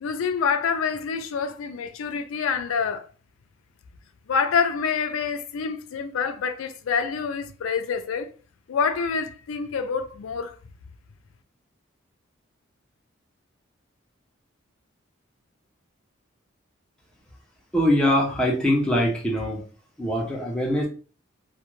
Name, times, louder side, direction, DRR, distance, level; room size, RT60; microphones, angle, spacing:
voice 1, 0.0-3.1 4.3-8.3 8.7-10.5, left 6 dB, 90° left, 0.4 m, -26 dB
voice 2, 17.7-19.6 20.0-20.9, equal, 5° left, 0.5 m, -22 dB
2.3 x 2.1 x 3.0 m
head